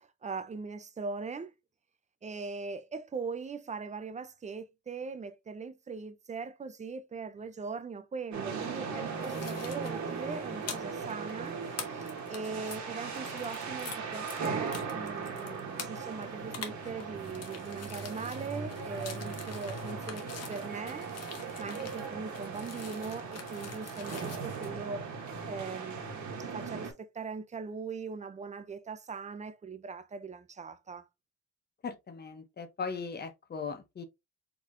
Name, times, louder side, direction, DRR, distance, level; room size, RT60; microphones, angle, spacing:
voice 1, 0.0-1.5 2.2-20.2 20.5-21.1 21.6-25.1 25.5-31.1, right 4 dB, 25° right, 0.4 m, -40 dB
sound 1, 8.3-26.9, right 5 dB, 65° right, 1.6 m, -38 dB
sound 2, 9.2-14.0 14.3-24.7, left 7 dB, 50° left, 1.2 m, -46 dB
voice 2, 31.8-34.0, left 5 dB, 30° left, 0.8 m, -38 dB
4.6 x 4.0 x 2.5 m
cardioid pair, 155°, 32 cm